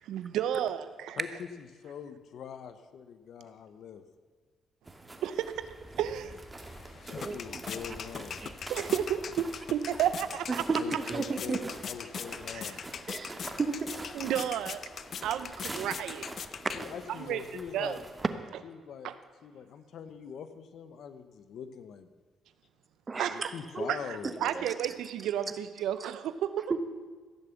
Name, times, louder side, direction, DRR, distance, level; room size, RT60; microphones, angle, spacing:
voice 1, 0.0-1.2 5.2-5.7 6.0-6.3 8.7-10.6 12.5-12.8 14.1-14.8 15.2-16.3 17.2-17.4 17.7-18.0 19.0-19.1 23.2-23.4 23.9-26.7, right 10 dB, 85° right, 12 dB, 0.6 m, -32 dB
voice 2, 1.2-4.0 7.1-8.4 10.8-12.8 16.7-18.0 18.6-19.1 19.4-22.1 23.3-24.7, left 7 dB, 70° left, 10 dB, 1.0 m, -43 dB
sound 1, 4.9-18.3, right 2 dB, 15° right, 1.8 m, -46 dB
sound 2, 6.6-17.3, left 7 dB, 55° left, 0.5 m, -42 dB
voice 3, 7.2-7.6 8.4-8.5 10.5-11.7 13.1-14.0 23.1-23.9 24.5-24.7 26.0-26.1 26.7-26.8, right 4 dB, 30° right, 9 dB, 1.1 m, -33 dB
16.0 x 7.1 x 7.1 m, 1.5 s
cardioid pair, 90°, 0 cm